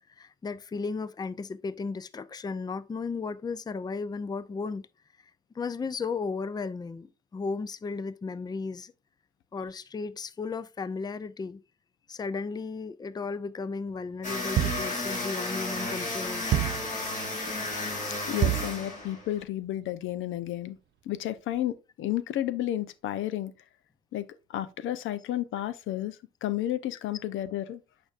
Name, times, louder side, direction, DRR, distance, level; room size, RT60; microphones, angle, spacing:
voice 1, 0.2-4.8 5.6-8.9 9.5-11.6 12.1-16.5, left 4 dB, 20° left, 0.5 m, -35 dB
sound 1, 14.2-19.4, left 2 dB, 40° left, 3.4 m, -33 dB
sound 2, 14.6-15.0 16.5-16.9 18.4-18.8, right 14 dB, 60° right, 0.4 m, -26 dB
voice 2, 18.1-20.8 21.1-23.5 24.1-27.8, left 13 dB, 80° left, 0.6 m, -32 dB
8.6 x 5.1 x 2.5 m
cardioid pair, 90°, 20 cm